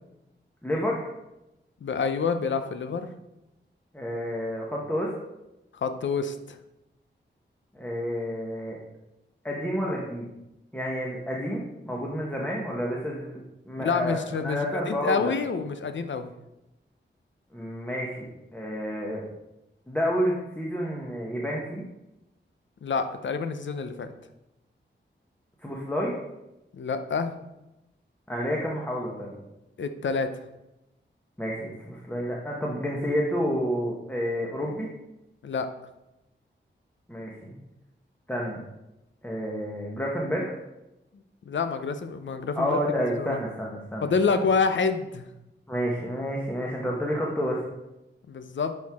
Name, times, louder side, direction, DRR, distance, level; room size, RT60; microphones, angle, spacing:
voice 1, 0.6-1.1 3.9-5.1 7.7-8.8 9.4-10.3 10.7-13.4 13.7-15.3 17.5-19.2 19.9-21.8 25.6-26.1 28.3-29.3 31.4-34.9 37.1-37.5 38.3-38.6 39.2-40.6 42.5-44.4 45.7-47.6, equal, 10° left, -3 dB, 1.1 m, -30 dB
voice 2, 1.8-3.1 5.8-6.6 13.8-16.3 22.8-24.1 26.7-27.3 29.8-30.3 35.4-35.7 41.5-42.8 43.2-43.4 44.0-45.3 48.3-48.7, left 5 dB, 70° left, 9 dB, 0.7 m, -27 dB
10.5 x 4.6 x 3.6 m, 0.94 s
wide cardioid pair, 120°, 20 cm